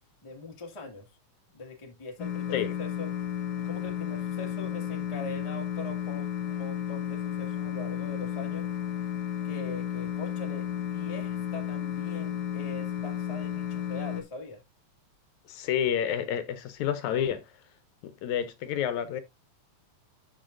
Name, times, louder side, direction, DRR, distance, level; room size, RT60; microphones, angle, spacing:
voice 1, 0.2-1.1 1.5-3.1 3.6-8.7 9.4-14.6, left 2 dB, 20° left, 0.8 m, -42 dB
sound 1, 2.2-14.2, left 10 dB, 50° left, 1.2 m, -33 dB
voice 2, 15.5-17.6 18.0-19.2, left 9 dB, 75° left, 2.0 m, -29 dB
12.5 x 5.4 x 2.5 m
omnidirectional pair, 3.5 m